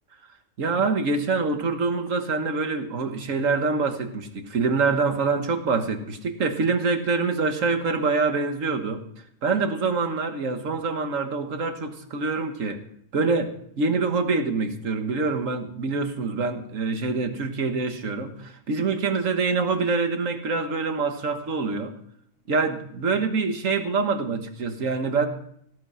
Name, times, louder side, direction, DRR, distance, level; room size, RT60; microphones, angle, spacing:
voice 1, 0.6-9.0 9.4-12.8 13.1-21.9 22.5-25.3, right 4 dB, 85° right, 7 dB, 1.8 m, -25 dB
18.0 x 8.5 x 5.7 m, 0.68 s
omnidirectional pair, 1.3 m